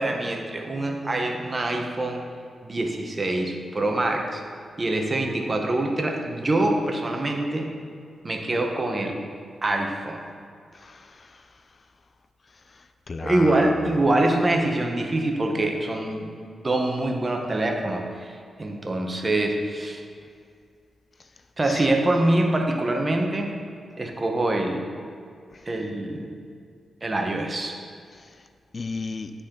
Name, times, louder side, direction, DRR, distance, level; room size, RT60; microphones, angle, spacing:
voice 1, 0.0-2.2 2.6-4.4 4.8-7.8 8.2-9.2 9.6-10.2 13.2-20.0 21.6-23.5 24.0-24.8 25.6-26.3 27.0-27.8, right 2 dB, 35° right, 2 dB, 1.1 m, -25 dB
voice 2, 10.7-11.4 13.1-13.7 21.7-21.9 28.1-28.3 28.7-29.3, left 4 dB, 50° left, 8 dB, 0.4 m, -34 dB
11.5 x 4.3 x 3.9 m, 2.2 s
cardioid pair, 55°, 0 cm